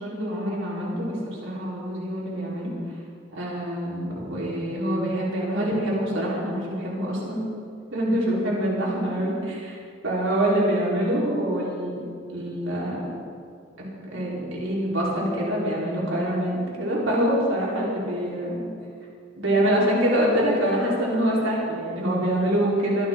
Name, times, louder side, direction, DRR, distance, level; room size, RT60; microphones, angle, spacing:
voice 1, 0.0-2.7 3.3-7.4 7.9-9.8 10.0-11.9 12.3-13.1 13.8-18.6 19.4-23.1, equal, 70° right, -6 dB, 4.9 m, -25 dB
24.5 x 12.5 x 4.1 m, 2.3 s
head